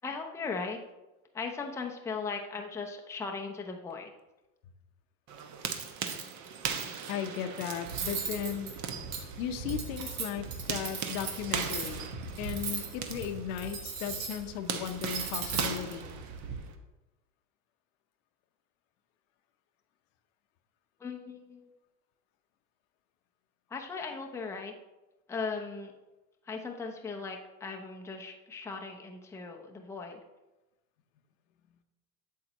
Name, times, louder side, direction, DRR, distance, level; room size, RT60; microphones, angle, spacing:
voice 1, 0.0-0.8 1.3-4.1 21.0-21.7 23.7-24.7 25.3-25.9 26.4-30.2, left 4 dB, 5° left, 2 dB, 0.6 m, -38 dB
sound 1, 5.3-16.7, right 6 dB, 40° right, 1.0 m, -39 dB
voice 2, 7.1-8.7 9.4-12.0 12.4-16.1, left 9 dB, 60° left, 8 dB, 0.9 m, -36 dB
Cutlery silverware, 7.8-16.6, right 5 dB, 65° right, 1.7 m, -38 dB
8.4 x 6.6 x 3.0 m, 1.0 s
supercardioid pair, 110°, 44 cm